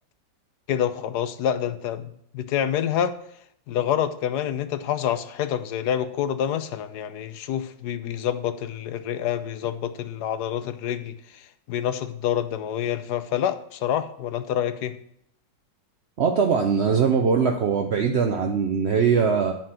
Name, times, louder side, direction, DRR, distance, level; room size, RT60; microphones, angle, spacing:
voice 1, 0.7-3.1 3.7-11.1 11.7-15.0, left 10 dB, 70° left, 1.2 m, -27 dB
voice 2, 16.2-19.6, right 6 dB, 65° right, 0.6 m, -21 dB
10.5 x 4.3 x 7.6 m
omnidirectional pair, 2.0 m